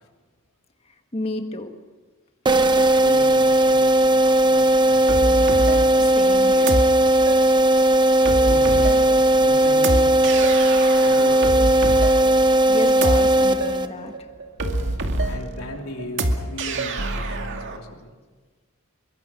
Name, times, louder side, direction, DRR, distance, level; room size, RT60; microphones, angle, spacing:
voice 1, 1.1-1.7 6.0-6.8 12.7-14.1, left 2 dB, 30° left, 5 dB, 1.7 m, -31 dB
sound 1, 2.5-14.2, right 1 dB, 20° right, 0.9 m, -17 dB
voice 2, 3.0-5.2 8.4-9.0 9.4-10.1 11.0-11.8 15.3-18.2, left 1 dB, 90° left, 2 dB, 3.4 m, -37 dB
sound 2, 5.1-17.8, right 2 dB, 60° right, 2.2 m, -27 dB
24.0 x 23.0 x 6.1 m, 1.3 s
head